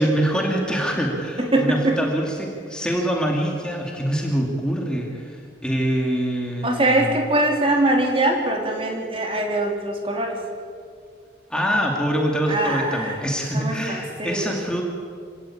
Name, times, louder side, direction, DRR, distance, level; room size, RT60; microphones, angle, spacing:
voice 1, 0.0-7.1 11.5-14.8, equal, 5° left, -1 dB, 2.5 m, -24 dB
voice 2, 1.4-2.0 6.6-10.4 12.5-13.2 13.5-14.5, right 1 dB, 30° right, 2 dB, 3.3 m, -22 dB
26.5 x 17.5 x 8.8 m, 2.2 s
head